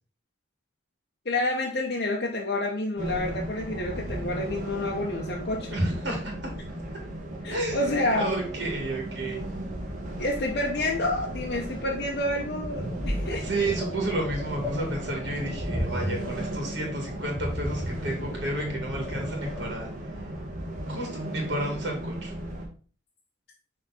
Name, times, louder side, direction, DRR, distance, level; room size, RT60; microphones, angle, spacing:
voice 1, 1.2-5.8 7.4-8.3 10.2-13.5, left 1 dB, 60° left, -2 dB, 0.9 m, -29 dB
sound 1, 3.0-22.7, right 1 dB, 40° right, 1.5 m, -36 dB
voice 2, 5.7-6.3 7.5-9.5 13.3-19.9 20.9-22.3, right 1 dB, 75° right, 0 dB, 2.1 m, -31 dB
sound 2, 12.7-19.7, equal, 5° left, 1.7 m, -35 dB
6.3 x 3.6 x 4.2 m, 0.40 s
head